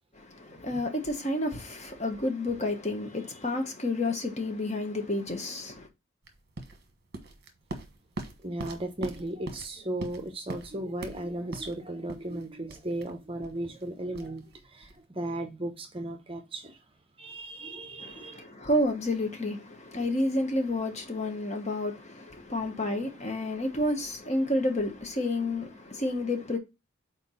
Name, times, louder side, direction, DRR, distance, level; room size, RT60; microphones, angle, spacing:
voice 1, 0.1-5.9 18.0-26.6, left 1 dB, 35° left, 1.1 m, -30 dB
sound 1, 6.2-15.0, right 2 dB, 50° right, 1.2 m, -42 dB
voice 2, 8.4-16.8 17.2-18.5, right 1 dB, 25° right, 0.8 m, -36 dB
4.6 x 4.3 x 5.4 m
head